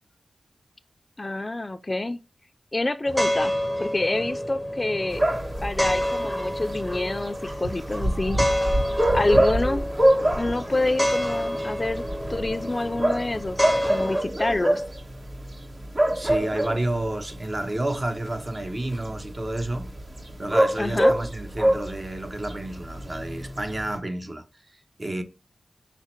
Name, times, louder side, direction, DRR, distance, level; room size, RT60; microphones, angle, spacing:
voice 1, 1.2-2.2 2.7-3.5 3.8-5.2 5.6-8.5 9.1-9.9 10.4-12.0 12.3-13.6 13.9-14.8 20.8-21.2, left 2 dB, 35° left, 0.3 m, -27 dB
sound 1, 3.1-14.2, equal, 5° right, 0.7 m, -28 dB
sound 2, 5.1-24.0, right 1 dB, 55° right, 1.3 m, -27 dB
voice 2, 16.1-19.9 20.4-25.2, right 1 dB, 40° right, 0.8 m, -30 dB
5.6 x 2.0 x 4.3 m
cardioid pair, 45°, 0 cm